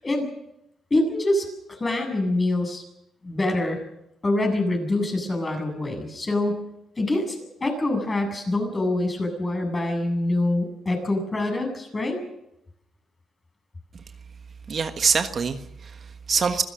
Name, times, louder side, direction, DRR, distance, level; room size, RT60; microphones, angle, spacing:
voice 1, 0.9-2.8 3.2-3.8 4.2-6.6 7.0-7.4 7.6-12.2, left 2 dB, 25° left, 4 dB, 7.7 m, -25 dB
voice 2, 14.7-16.6, right 5 dB, 45° right, 7 dB, 1.4 m, -25 dB
26.0 x 16.5 x 6.6 m, 0.82 s
cardioid pair, 90°, 0 cm